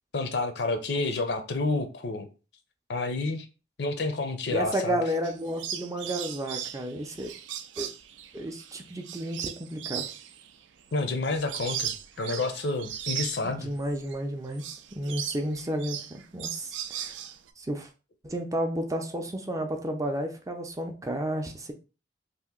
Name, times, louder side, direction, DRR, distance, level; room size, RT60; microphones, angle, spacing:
voice 1, 0.1-2.3 2.9-3.4 3.8-5.0 10.9-13.7, left 3 dB, 65° left, 0.6 m, -29 dB
voice 2, 4.5-7.3 7.8-7.9 8.3-10.0 13.4-17.1 17.6-17.9 18.2-21.7, right 1 dB, 15° right, 0.4 m, -32 dB
sound 1, 5.2-14.2 14.5-17.5, right 9 dB, 80° right, 0.4 m, -38 dB
2.8 x 2.5 x 3.6 m
head